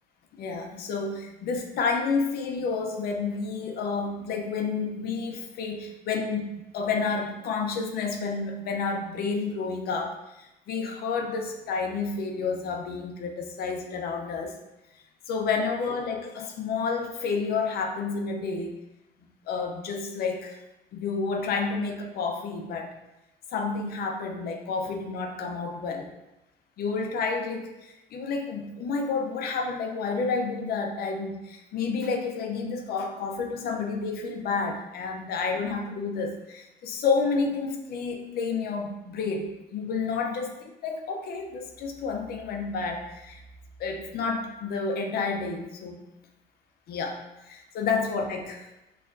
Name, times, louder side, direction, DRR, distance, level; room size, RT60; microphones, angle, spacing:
voice 1, 0.4-14.6 15.3-18.8 19.5-20.6 20.9-22.9 23.5-26.1 26.8-40.5 40.8-43.4 43.8-46.0 46.9-48.7, left 4 dB, 65° left, 2 dB, 0.7 m, -30 dB
6.3 x 3.2 x 2.6 m, 0.95 s
cardioid pair, 110°, 17 cm